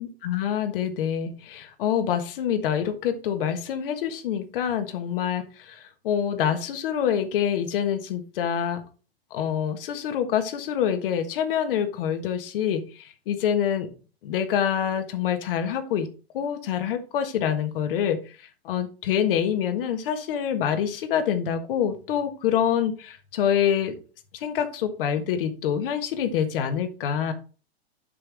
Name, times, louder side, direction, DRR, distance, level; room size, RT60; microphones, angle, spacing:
voice 1, 0.0-8.8 9.3-13.9 14.2-16.1 16.3-24.0 24.3-27.3, left 9 dB, 60° left, 9 dB, 1.4 m, -26 dB
7.5 x 5.9 x 3.5 m, 0.35 s
hypercardioid pair, 115°, 32 cm